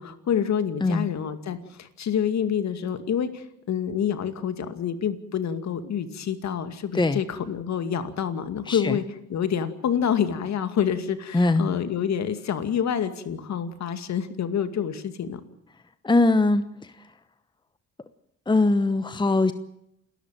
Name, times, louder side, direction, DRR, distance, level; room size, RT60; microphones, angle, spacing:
voice 1, 0.0-9.0 9.3-15.4, left 8 dB, 65° left, 10 dB, 2.4 m, -27 dB
voice 2, 8.7-9.0 11.3-11.7 16.0-16.9 18.5-19.5, left 2 dB, 15° left, 11 dB, 1.0 m, -21 dB
28.5 x 13.5 x 9.2 m, 0.80 s
cardioid pair, 90°, 30 cm